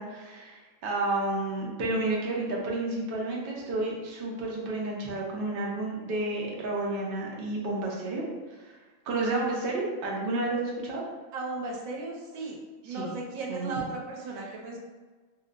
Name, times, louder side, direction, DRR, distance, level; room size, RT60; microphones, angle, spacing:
voice 1, 0.0-8.2 8.6-8.7 9.1-11.0 12.9-13.1 13.5-13.7, right 2 dB, 55° right, -3 dB, 0.7 m, -31 dB
voice 2, 11.3-12.6 12.8-14.8, right 3 dB, 90° right, -1 dB, 1.0 m, -36 dB
2.9 x 2.7 x 2.4 m, 1.4 s
omnidirectional pair, 1.4 m